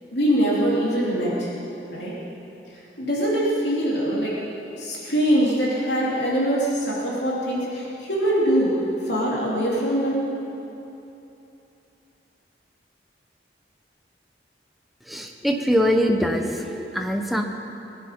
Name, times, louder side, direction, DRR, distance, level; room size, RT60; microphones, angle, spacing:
voice 1, 0.1-1.5 1.9-2.1 3.0-4.4 4.8-8.8 9.1-10.2, equal, 80° left, -6 dB, 3.0 m, -23 dB
voice 2, 15.1-17.4, equal, ahead, 2 dB, 0.9 m, -23 dB
21.0 x 10.5 x 5.2 m, 3.0 s
head